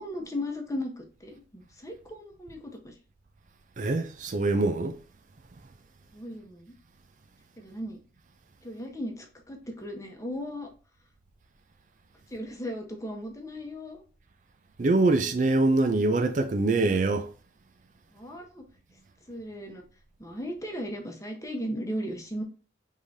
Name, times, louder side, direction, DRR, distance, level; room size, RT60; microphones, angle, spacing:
voice 1, 0.0-3.0 6.1-6.7 7.6-8.0 8.6-10.7 12.3-14.0 18.1-18.7 19.3-19.8 20.2-22.4, equal, 20° left, 1.0 m, -36 dB
voice 2, 3.8-5.0 14.8-17.3, right 2 dB, 45° right, 0.4 m, -24 dB
4.8 x 3.7 x 2.7 m
head